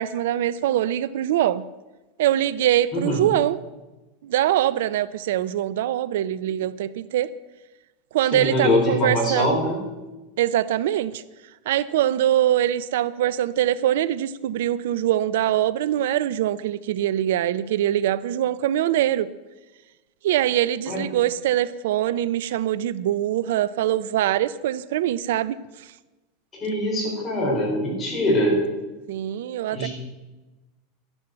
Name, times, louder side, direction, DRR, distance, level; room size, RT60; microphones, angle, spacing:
voice 1, 0.0-1.6 2.2-3.6 4.2-7.3 8.1-9.6 10.4-11.2 11.7-19.3 20.2-25.6 29.1-29.9, right 12 dB, 75° right, 17 dB, 0.5 m, -23 dB
voice 2, 2.9-3.2 8.3-9.8 20.9-21.0 26.6-28.6 29.7-29.9, left 1 dB, 15° left, -3 dB, 4.8 m, -23 dB
12.0 x 11.0 x 7.8 m, 1.1 s
supercardioid pair, 170°, 0 cm